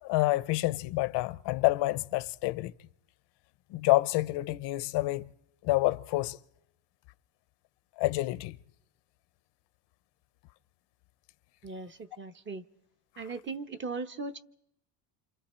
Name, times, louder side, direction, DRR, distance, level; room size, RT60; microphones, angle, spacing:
voice 1, 0.0-2.7 3.7-5.3 5.6-6.4 8.0-8.6, left 19 dB, 75° left, 0.8 m, -28 dB
voice 2, 11.6-12.6 13.2-14.4, right 4 dB, 25° right, 1.1 m, -38 dB
28.5 x 26.5 x 4.4 m
cardioid pair, 140°, 42 cm